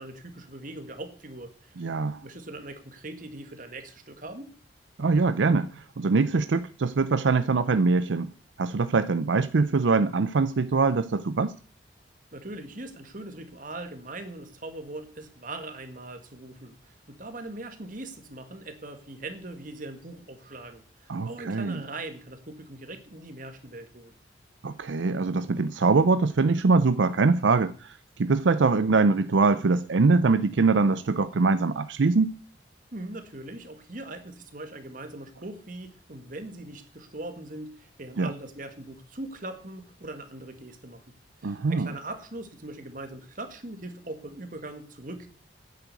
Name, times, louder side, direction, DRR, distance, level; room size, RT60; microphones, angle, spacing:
voice 1, 0.0-1.8 2.2-4.5 12.3-24.1 32.9-41.0 41.4-45.3, right 2 dB, 45° right, 1.9 m, -41 dB
voice 2, 1.8-2.2 5.0-8.3 8.6-11.5 21.1-21.8 24.6-32.4 38.2-38.3 41.4-41.9, right 4 dB, 80° right, 0.5 m, -23 dB
9.9 x 8.4 x 8.2 m
head